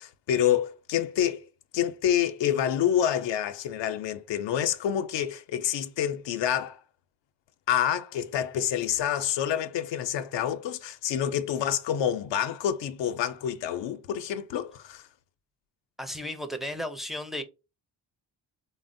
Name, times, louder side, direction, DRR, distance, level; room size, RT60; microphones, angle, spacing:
voice 1, 0.0-1.4 1.7-6.8 7.7-15.0, left 10 dB, 75° left, 0.5 m, -27 dB
voice 2, 16.0-17.4, equal, ahead, 0.4 m, -34 dB
3.2 x 2.0 x 2.5 m
cardioid pair, 65°, 44 cm